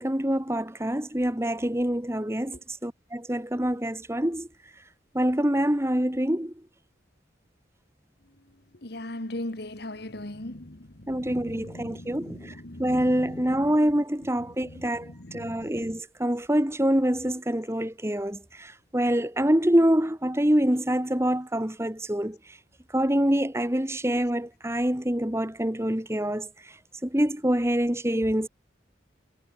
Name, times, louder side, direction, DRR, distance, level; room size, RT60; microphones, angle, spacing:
voice 1, 0.0-4.5 5.1-6.5 11.1-12.5 12.8-22.4 22.9-26.5 27.0-28.5, equal, 15° right, 1.5 m, -25 dB
voice 2, 8.7-13.8 14.4-16.0, left 1 dB, 55° left, 2.0 m, -40 dB
head